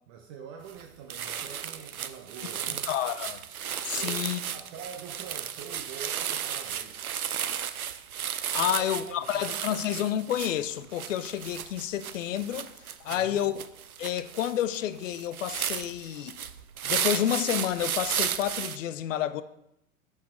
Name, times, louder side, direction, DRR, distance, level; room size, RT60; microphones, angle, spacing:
voice 1, 0.1-2.9 3.9-4.3 4.5-7.2 8.6-9.8 13.0-13.4, right 7 dB, 25° right, 0.3 m, -45 dB
sound 1, 0.7-0.8 1.1-18.8, right 9 dB, 90° right, 0.5 m, -34 dB
voice 2, 2.7-3.4 3.8-4.4 8.5-12.7 13.0-13.5 14.0-16.4 16.8-19.4, left 11 dB, 65° left, 0.6 m, -30 dB
6.3 x 5.6 x 4.2 m
figure-of-eight pair, 100°, 42 cm